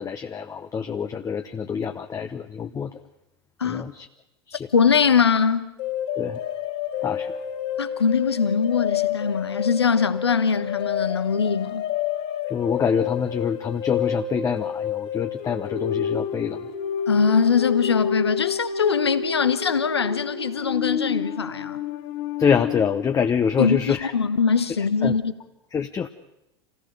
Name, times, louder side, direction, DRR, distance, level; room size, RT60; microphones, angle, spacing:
voice 1, 0.0-2.9 3.7-4.1 4.5-4.7 6.2-6.4 7.0-7.3 12.5-16.6 22.4-24.1 25.0-25.1 25.7-26.1, left 7 dB, 25° left, 1.0 m, -25 dB
voice 2, 4.7-5.7 7.8-11.8 17.1-21.8 23.6-25.3, left 6 dB, 90° left, 1.1 m, -22 dB
sound 1, 5.8-23.2, left 9 dB, 60° left, 3.2 m, -29 dB
26.5 x 17.0 x 6.8 m
hypercardioid pair, 85°, 13 cm